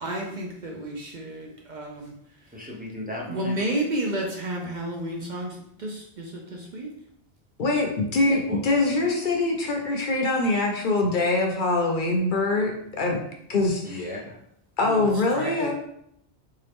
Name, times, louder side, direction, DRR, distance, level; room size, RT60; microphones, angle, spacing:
voice 1, 0.0-2.1 3.3-6.9 14.8-15.7, right 1 dB, 55° right, 0 dB, 0.6 m, -31 dB
voice 2, 2.5-3.5 8.2-8.6 9.0-9.1 13.8-14.4, left 1 dB, 10° right, -4 dB, 0.6 m, -35 dB
voice 3, 7.6-13.2 13.5-14.0 14.8-15.7, left 2 dB, 55° left, 1 dB, 0.7 m, -24 dB
3.7 x 2.8 x 3.4 m, 0.72 s
omnidirectional pair, 1.1 m